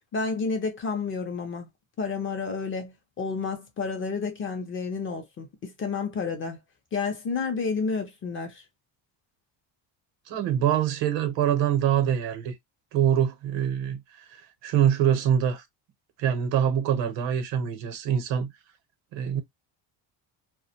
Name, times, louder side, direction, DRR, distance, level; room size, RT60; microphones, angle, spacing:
voice 1, 0.1-1.7 2.0-6.6 6.9-8.6, left 4 dB, 30° left, 0.4 m, -30 dB
voice 2, 10.3-12.5 12.9-14.0 14.6-15.6 16.2-18.5 19.1-19.4, right 9 dB, 80° right, 0.8 m, -24 dB
2.4 x 2.1 x 2.7 m
cardioid pair, 175°, 43 cm